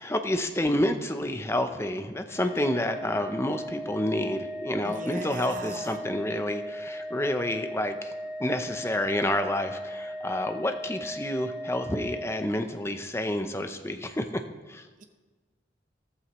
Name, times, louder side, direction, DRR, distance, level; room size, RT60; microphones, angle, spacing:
voice 1, 0.0-8.1 8.4-14.4 14.7-14.9, left 1 dB, 15° left, 7 dB, 0.6 m, -29 dB
Organ, 2.2-12.9, equal, 15° right, 4.6 m, -38 dB
voice 2, 4.8-6.0 15.0-15.1, right 2 dB, 40° right, 6 dB, 0.7 m, -39 dB
14.0 x 13.0 x 3.1 m, 1.3 s
head